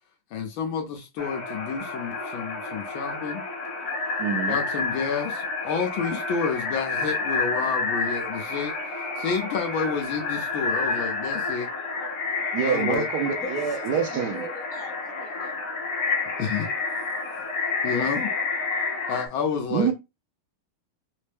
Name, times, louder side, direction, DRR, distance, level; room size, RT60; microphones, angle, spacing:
voice 1, 0.3-3.5 4.5-11.7 12.6-13.1 16.4-16.7 17.8-18.3 19.1-19.9, left 6 dB, 70° left, 1.4 m, -30 dB
sound 1, 1.2-19.3, left 3 dB, 55° left, 1.2 m, -29 dB
voice 2, 4.2-4.6 12.5-14.4 19.7-19.9, right 7 dB, 75° right, 0.9 m, -26 dB
voice 3, 13.3-15.6, equal, 5° left, 0.4 m, -40 dB
4.3 x 2.1 x 3.3 m
omnidirectional pair, 2.4 m